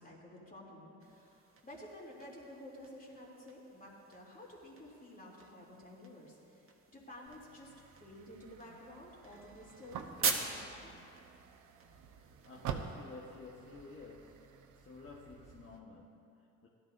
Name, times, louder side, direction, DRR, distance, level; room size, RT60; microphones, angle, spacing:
voice 1, 0.0-7.7 8.0-10.9, left 1 dB, 30° left, -4 dB, 3.0 m, -52 dB
sound 1, 1.0-12.8, right 5 dB, 45° right, 1.2 m, -44 dB
sound 2, 7.3-15.8, right 7 dB, 75° right, 0.9 m, -48 dB
voice 2, 12.4-16.7, left 3 dB, 45° left, -3 dB, 1.3 m, -52 dB
17.0 x 12.5 x 2.6 m, 2.7 s
cardioid pair, 90°, 30 cm